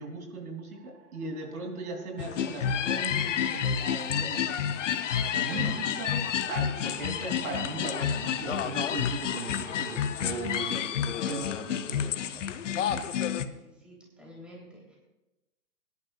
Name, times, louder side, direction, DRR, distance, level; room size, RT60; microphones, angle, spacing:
voice 1, 0.0-5.1 5.3-6.1 6.5-12.4, right 3 dB, 70° right, 1 dB, 3.4 m, -38 dB
sound 1, 0.7-10.9, right 7 dB, 40° right, 2.0 m, -53 dB
sound 2, 2.2-13.5, left 8 dB, 55° left, 0.8 m, -30 dB
voice 2, 5.5-5.8 6.1-6.2 6.7-6.8 7.5-7.9 12.5-13.1 13.4-15.0, right 1 dB, ahead, -5 dB, 3.5 m, -46 dB
24.0 x 11.0 x 2.5 m, 1.0 s
figure-of-eight pair, 125°, 45 cm